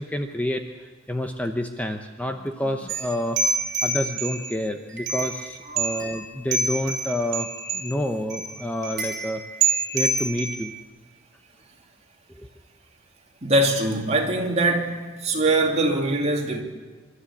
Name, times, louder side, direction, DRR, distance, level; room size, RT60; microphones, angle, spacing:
voice 1, 0.0-3.4 3.8-9.4 9.9-10.7 12.4-12.5, left 1 dB, 10° left, 0.9 m, -28 dB
sound 1, 2.9-4.5 5.0-5.5 5.8-6.3 6.5-7.9 8.3-8.5 8.8-10.8, right 4 dB, 55° right, 3.5 m, -27 dB
voice 2, 5.7-6.0 13.4-16.6, right 2 dB, 35° right, 2.9 m, -23 dB
26.0 x 13.0 x 8.5 m
head